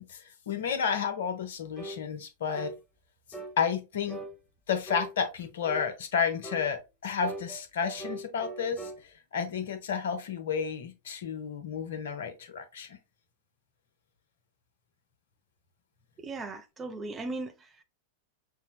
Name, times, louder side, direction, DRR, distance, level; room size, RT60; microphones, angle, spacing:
voice 1, 0.0-2.7 3.6-4.2 4.7-13.0, left 6 dB, 60° left, 0.7 m, -31 dB
sound 1, 1.8-2.0 2.5-2.8 3.3-3.6 4.1-4.3 4.9-5.1 5.6-5.9 6.4-6.7 7.2-9.0, right 2 dB, 5° left, 0.9 m, -40 dB
voice 2, 16.2-17.8, right 3 dB, 20° right, 0.5 m, -38 dB
5.5 x 2.0 x 2.2 m
figure-of-eight pair, 90°, 0 cm